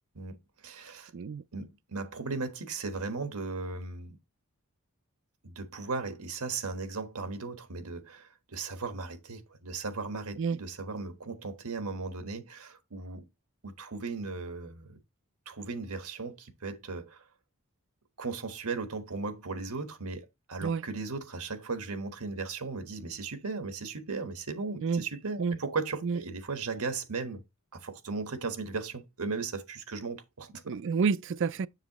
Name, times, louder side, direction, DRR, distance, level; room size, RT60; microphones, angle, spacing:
voice 1, 0.6-1.1 1.5-4.1 5.4-13.2 13.6-15.0 15.4-17.2 18.2-27.4 27.7-30.6, right 4 dB, 90° right, 1.4 m, -37 dB
voice 2, 30.7-31.7, right 5 dB, 55° right, 0.4 m, -29 dB
7.3 x 6.5 x 3.0 m
head